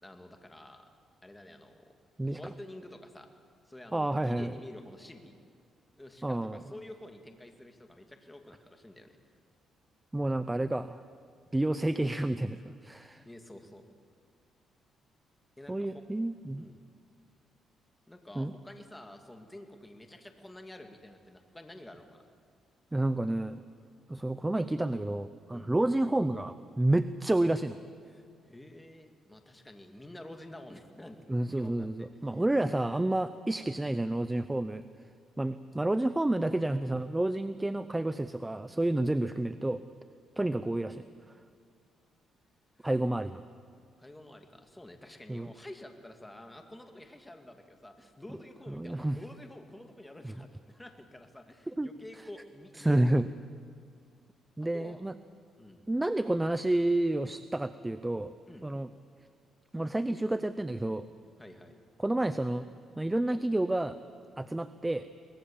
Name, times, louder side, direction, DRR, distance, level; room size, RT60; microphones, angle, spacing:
voice 1, 0.0-0.9 1.2-1.9 2.2-3.3 3.7-5.3 6.0-9.2 13.3-13.8 15.6-16.0 16.6-16.8 18.1-22.2 25.5-25.7 28.1-31.9 32.3-32.4 42.8-42.9 44.0-53.2 54.7-55.0 55.6-55.8 58.5-58.7 61.4-61.7, left 1 dB, 10° left, 5 dB, 2.4 m, -49 dB
voice 2, 3.9-4.5 6.2-6.6 10.1-11.0 11.5-13.2 15.7-16.6 18.4-18.5 22.9-23.6 24.1-27.8 31.3-34.8 35.4-39.8 40.4-41.0 42.8-43.4 45.3-45.5 48.8-49.2 50.2-50.4 51.8-51.9 52.8-53.3 54.6-55.1 55.9-58.3 58.6-58.9 59.7-61.1 62.0-62.7 63.0-64.0 64.4-65.1, right 1 dB, 10° right, 13 dB, 0.6 m, -30 dB
23.5 x 19.5 x 7.3 m, 2.3 s
cardioid pair, 90°, 0 cm